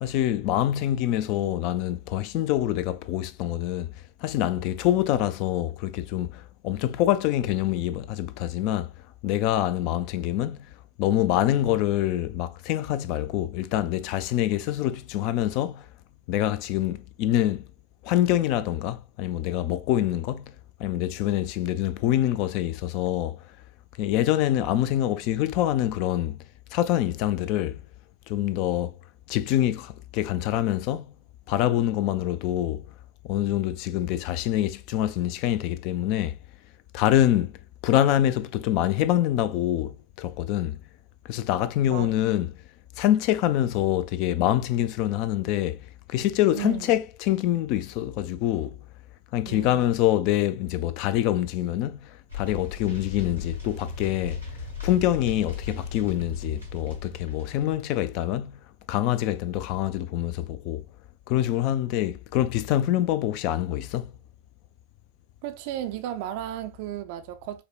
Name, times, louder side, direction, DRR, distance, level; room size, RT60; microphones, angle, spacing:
voice 1, 0.0-3.9 4.2-8.9 9.2-10.7 11.0-15.9 16.3-17.7 18.0-20.5 20.8-23.4 24.0-26.4 26.7-27.8 28.3-28.9 29.3-31.1 31.5-32.8 33.2-36.4 36.9-37.5 37.8-40.8 41.3-42.5 43.0-48.8 49.3-54.4 54.8-58.6 58.9-60.8 61.3-64.1, left 13 dB, 45° left, 0.3 m, -25 dB
voice 2, 46.5-46.9 49.5-49.9 65.4-67.6, right 12 dB, 45° right, 0.4 m, -34 dB
sound 1, 52.3-57.8, left 4 dB, 80° left, 1.7 m, -37 dB
4.9 x 2.1 x 2.3 m
figure-of-eight pair, 90°, 0 cm